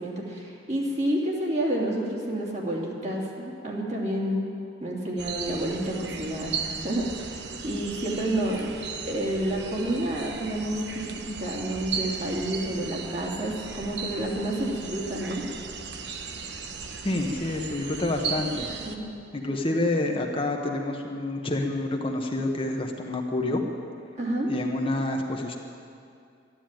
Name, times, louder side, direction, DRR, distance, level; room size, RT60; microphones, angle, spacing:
voice 1, 0.0-4.5 4.8-6.5 6.8-8.7 9.1-15.4 18.8-19.0 24.2-24.5, right 1 dB, 40° right, -3 dB, 2.9 m, -29 dB
sound 1, 5.2-19.0, right 5 dB, 75° right, 1.1 m, -36 dB
voice 2, 17.0-18.7 19.3-23.6 24.5-25.6, left 2 dB, 30° left, 2 dB, 1.1 m, -28 dB
12.5 x 11.5 x 9.0 m, 2.5 s
head